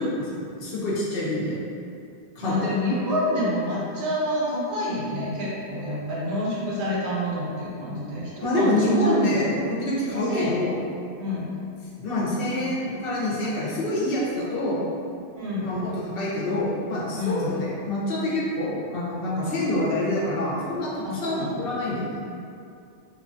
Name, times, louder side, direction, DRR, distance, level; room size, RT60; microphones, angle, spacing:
voice 1, 0.0-1.6 2.4-2.7 8.4-10.7 12.0-14.8 15.6-22.1, left 1 dB, 65° left, -6 dB, 0.7 m, -26 dB
voice 2, 2.4-9.6 10.1-10.6 11.2-11.5 15.3-15.8 17.1-17.6 21.0-21.7, left 1 dB, 85° right, -7 dB, 1.1 m, -28 dB
3.1 x 2.1 x 2.5 m, 2.5 s
omnidirectional pair, 1.1 m